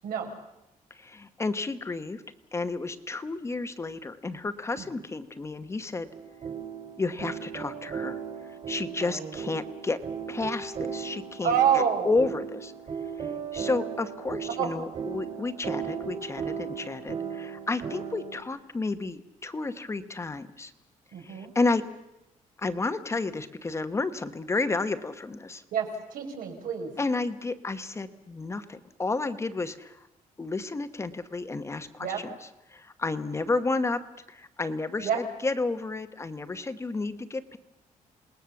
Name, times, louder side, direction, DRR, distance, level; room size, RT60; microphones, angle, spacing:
voice 1, 0.9-2.2 2.5-6.1 7.0-8.2 8.7-10.0 10.3-12.7 13.2-20.7 21.2-21.8 22.6-25.6 27.0-30.1 30.4-32.3 32.7-34.0 34.3-37.6, left 3 dB, 20° left, 10 dB, 1.0 m, -31 dB
sound 1, 6.1-18.4, right 7 dB, 45° right, 3.3 m, -36 dB
voice 2, 9.0-9.4 11.4-12.1 14.5-14.8 21.1-21.5 25.7-26.9 32.0-32.2 35.0-35.2, right 8 dB, 85° right, 3 dB, 5.0 m, -27 dB
28.0 x 19.5 x 7.1 m, 0.92 s
cardioid pair, 160°, 14 cm